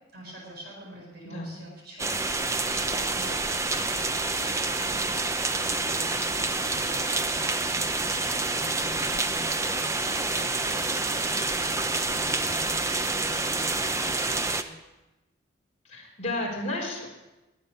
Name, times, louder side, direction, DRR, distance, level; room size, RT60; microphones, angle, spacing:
voice 1, 0.1-5.3 5.7-14.7, equal, 50° right, -4 dB, 7.4 m, -46 dB
sound 1, 2.0-14.6, right 3 dB, 15° right, 0.6 m, -28 dB
voice 2, 15.8-17.1, left 2 dB, 35° left, -3 dB, 4.5 m, -32 dB
21.5 x 9.0 x 6.7 m, 1.0 s
head